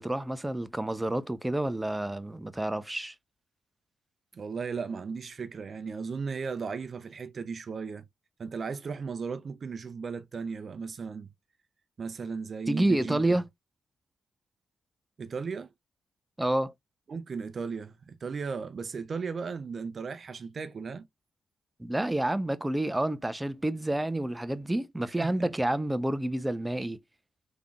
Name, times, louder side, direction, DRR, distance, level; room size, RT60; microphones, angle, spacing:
voice 1, 0.0-3.1 12.7-13.4 16.4-16.7 21.8-27.0, right 1 dB, 10° right, 0.6 m, -29 dB
voice 2, 4.3-8.0 8.4-11.3 12.0-13.4 15.2-15.7 17.1-21.1 25.2-25.5, right 5 dB, 55° right, 0.5 m, -36 dB
3.6 x 3.5 x 2.4 m
cardioid pair, 65°, 0 cm